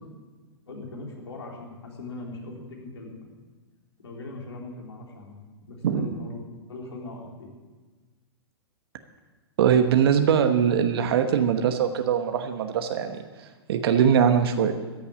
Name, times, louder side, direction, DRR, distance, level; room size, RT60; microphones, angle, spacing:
voice 1, 0.7-3.4 4.0-5.4 5.7-6.4 6.7-7.5, left 2 dB, 80° left, -1 dB, 3.7 m, -40 dB
voice 2, 9.6-13.2 13.7-14.7, right 8 dB, 65° right, 7 dB, 1.1 m, -21 dB
14.0 x 7.1 x 9.8 m, 1.3 s
hypercardioid pair, 115°, 14 cm